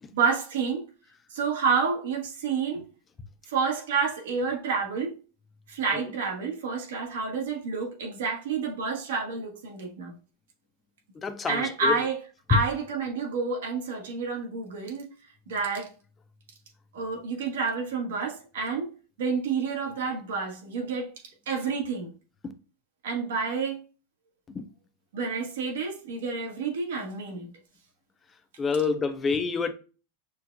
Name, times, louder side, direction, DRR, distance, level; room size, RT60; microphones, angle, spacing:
voice 1, 0.1-0.8 1.3-2.8 3.5-5.1 5.7-10.2 11.5-12.2 12.5-15.1 15.5-15.9 16.9-18.9 19.2-21.1 21.5-22.1 23.0-23.8 25.1-27.5, right 5 dB, 85° right, 1.3 m, -29 dB
voice 2, 11.2-12.0 12.5-12.6 22.4-22.5 24.5-24.7 28.6-29.7, left 5 dB, 10° left, 0.3 m, -27 dB
5.9 x 2.3 x 2.5 m
supercardioid pair, 180°, 0 cm